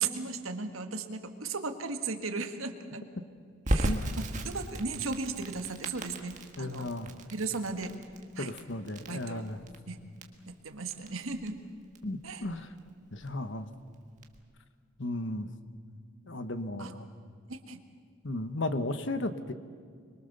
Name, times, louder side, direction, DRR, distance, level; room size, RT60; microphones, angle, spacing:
voice 1, 0.0-3.0 3.7-6.9 7.3-7.9 8.3-8.5 9.1-9.4 9.9-10.0 10.5-11.6 12.2-12.5 16.8-16.9 17.5-17.8, right 4 dB, 80° right, 7 dB, 1.7 m, -36 dB
Crackle, 3.7-14.4, right 1 dB, 35° right, 1.7 m, -37 dB
voice 2, 6.6-7.2 8.4-9.6 12.0-12.7 13.1-13.7 15.0-15.5 16.3-17.1 18.2-19.5, left 1 dB, 60° left, 10 dB, 1.2 m, -35 dB
25.0 x 22.5 x 6.8 m, 2.1 s
head